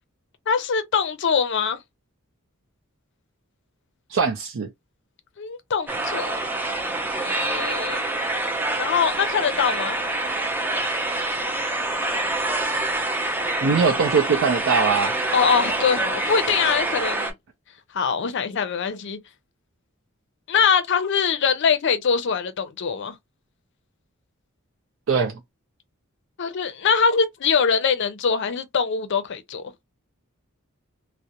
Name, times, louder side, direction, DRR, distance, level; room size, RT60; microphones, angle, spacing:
voice 1, 0.5-1.8 5.4-6.3 7.1-8.1 8.8-10.0 15.3-17.3 17.9-19.2 20.5-23.2 26.4-29.6, left 6 dB, 60° left, 0.5 m, -23 dB
voice 2, 4.1-4.7 13.6-15.1 25.1-25.4, right 5 dB, 65° right, 0.5 m, -21 dB
sound 1, 5.9-17.3, right 2 dB, 10° right, 0.4 m, -26 dB
2.4 x 2.1 x 2.8 m
head